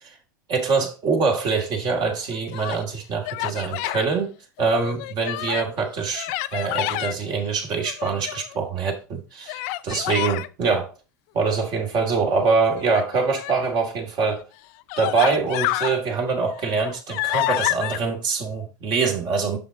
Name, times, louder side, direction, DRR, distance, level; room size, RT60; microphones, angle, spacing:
voice 1, 0.5-4.3 4.6-10.9 11.3-14.4 15.0-19.6, right 4 dB, 45° right, 2.4 m, -24 dB
Human voice, 2.2-2.8 3.2-4.1 4.6-5.7 6.1-7.1 7.8-8.6 9.5-10.5 12.7-13.7 14.4-14.5 14.9-16.0 16.5-18.0, left 16 dB, 55° left, 0.4 m, -28 dB
6.9 x 6.2 x 3.9 m
hypercardioid pair, 85°, 10 cm